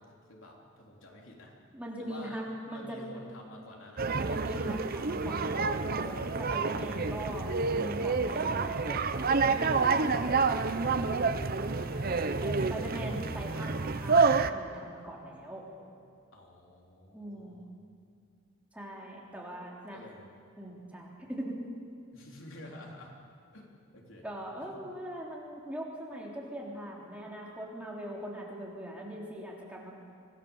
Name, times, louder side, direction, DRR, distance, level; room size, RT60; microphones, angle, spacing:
voice 1, 0.0-1.6 2.0-2.4 2.7-4.3 6.9-7.8 9.3-13.1 16.3-17.7 19.9-20.3 22.1-23.1 23.5-24.3 24.6-24.7, left 1 dB, 65° left, -1 dB, 3.6 m, -50 dB
voice 2, 1.7-3.0 4.3-9.0 12.4-15.7 17.1-17.6 18.7-20.0 20.6-21.6 24.2-29.9, right 1 dB, 5° right, -3 dB, 3.4 m, -41 dB
sound 1, 4.0-14.5, right 4 dB, 45° right, 0.8 m, -28 dB
26.0 x 18.0 x 7.2 m, 2.4 s
head